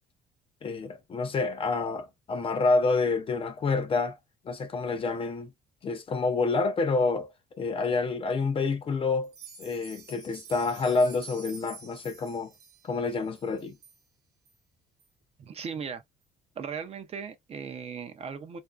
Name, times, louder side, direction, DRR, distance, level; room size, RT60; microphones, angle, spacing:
voice 1, 0.6-4.2 4.4-5.5 5.8-9.3 9.6-12.5 12.8-13.7, left 3 dB, 35° left, 0.5 m, -28 dB
sound 1, 9.2-14.0 14.5-14.6 15.0-15.1 15.6-15.7, right 4 dB, 75° right, 0.7 m, -48 dB
voice 2, 15.4-16.0 16.6-18.6, right 6 dB, 35° right, 0.5 m, -37 dB
2.4 x 2.1 x 2.4 m
cardioid pair, 110°, 17 cm